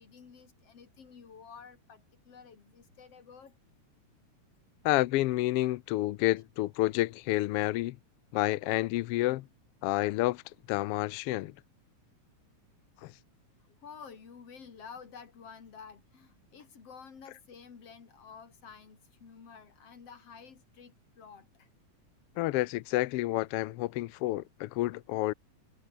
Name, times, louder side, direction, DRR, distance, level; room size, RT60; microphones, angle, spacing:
voice 1, 0.0-3.5 5.6-5.8 13.0-13.1 13.8-21.7, left 6 dB, 55° left, 3.9 m, -51 dB
voice 2, 4.8-8.0 8.3-9.5 9.8-10.4 10.7-11.5 13.0-13.1 22.4-25.3, left 17 dB, 85° left, 1.3 m, -29 dB
omnidirectional pair, 3.4 m